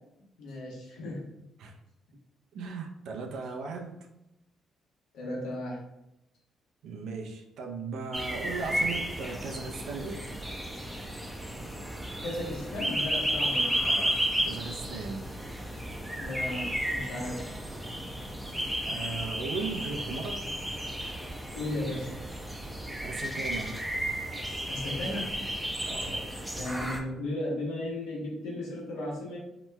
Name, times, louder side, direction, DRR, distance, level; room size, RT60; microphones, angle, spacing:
voice 1, 0.4-1.3 5.1-5.8 12.2-13.8 16.2-17.4 21.5-22.1 24.7-25.4 26.5-29.4, left 1 dB, 90° left, -3 dB, 1.0 m, -35 dB
voice 2, 2.5-4.0 6.8-10.3 13.8-15.3 18.8-20.6 23.0-23.7 25.8-26.7 27.8-27.9, right 4 dB, 75° right, 3 dB, 0.5 m, -37 dB
sound 1, 8.1-27.0, equal, 5° right, 0.5 m, -33 dB
2.9 x 2.2 x 3.2 m, 0.88 s
cardioid pair, 90°, 0 cm